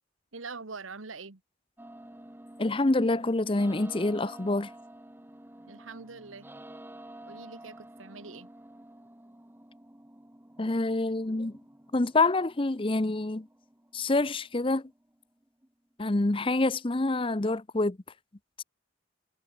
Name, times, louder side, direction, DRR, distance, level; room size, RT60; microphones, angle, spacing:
voice 1, 0.3-1.4 5.7-6.6 7.3-8.5, right 4 dB, 85° right, 1.6 m, -43 dB
sound 1, 1.8-15.7, right 1 dB, 10° right, 0.9 m, -50 dB
voice 2, 2.6-4.7 10.6-11.6 11.9-13.5 13.9-14.9 16.0-18.0 18.6-18.7, left 2 dB, 25° left, 0.7 m, -27 dB
head